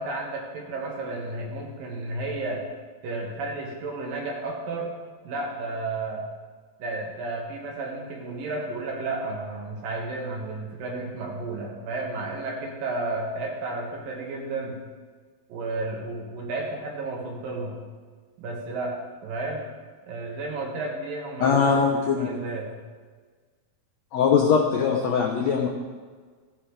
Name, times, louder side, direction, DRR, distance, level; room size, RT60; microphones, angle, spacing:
voice 1, 0.0-2.6 3.0-4.9 5.3-6.3 6.8-14.8 15.5-17.8 18.4-19.0 19.2-19.7 20.1-22.7, right 2 dB, 70° right, -1 dB, 3.3 m, -32 dB
voice 2, 21.4-22.3 24.1-25.7, left 6 dB, 75° left, 0 dB, 1.6 m, -21 dB
15.0 x 9.1 x 3.3 m, 1.5 s
omnidirectional pair, 4.2 m